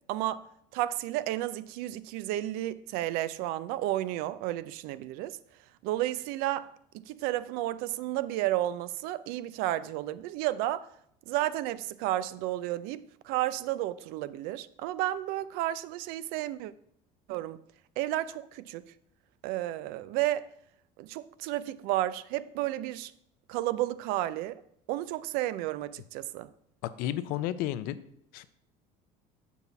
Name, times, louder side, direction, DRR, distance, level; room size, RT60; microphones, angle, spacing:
voice 1, 0.1-0.4 0.7-5.4 5.8-6.7 7.0-10.9 11.3-16.7 17.3-17.6 18.0-18.8 19.4-20.5 21.0-23.1 23.5-24.6 24.9-26.5, right 14 dB, 75° right, 0.4 m, -32 dB
voice 2, 26.8-28.0 28.3-28.4, left 13 dB, 70° left, 0.5 m, -32 dB
7.0 x 4.1 x 5.8 m
cardioid pair, 145°, 16 cm